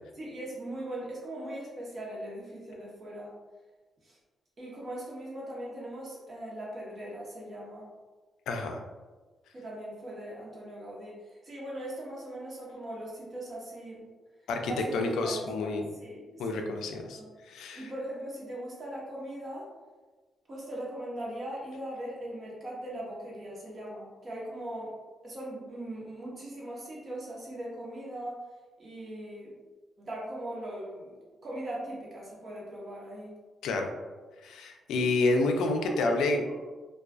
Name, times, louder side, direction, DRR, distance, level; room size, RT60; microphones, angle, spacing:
voice 1, 0.1-3.3 4.0-4.2 4.6-7.9 9.5-11.1 11.4-14.1 14.6-14.9 15.2-15.7 16.0-17.3 17.7-19.7 20.5-24.9 25.2-28.4 28.8-29.5 30.0-31.1 31.4-33.3 35.8-36.6, right 1 dB, 40° right, -5 dB, 0.8 m, -40 dB
voice 2, 8.5-8.8 14.5-15.9 16.4-17.2 17.5-17.9 33.6-33.9 34.4-36.4, left 2 dB, 90° left, 4 dB, 0.3 m, -29 dB
2.4 x 2.3 x 2.3 m, 1.3 s
cardioid pair, 100°, 0 cm